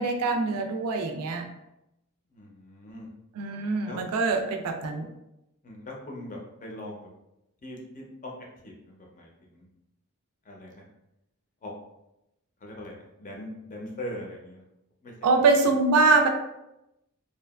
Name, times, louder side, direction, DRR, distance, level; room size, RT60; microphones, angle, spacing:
voice 1, 0.0-1.5 3.4-5.1 15.2-16.3, right 3 dB, 85° right, 5 dB, 0.4 m, -23 dB
voice 2, 2.3-3.1 3.8-4.0 5.6-7.1 7.6-8.3 8.6-9.7 10.4-10.8 11.6-11.7 12.6-14.6 15.0-15.1 15.6-15.7, left 1 dB, 35° left, -1 dB, 0.5 m, -41 dB
2.7 x 2.3 x 2.3 m, 0.89 s
head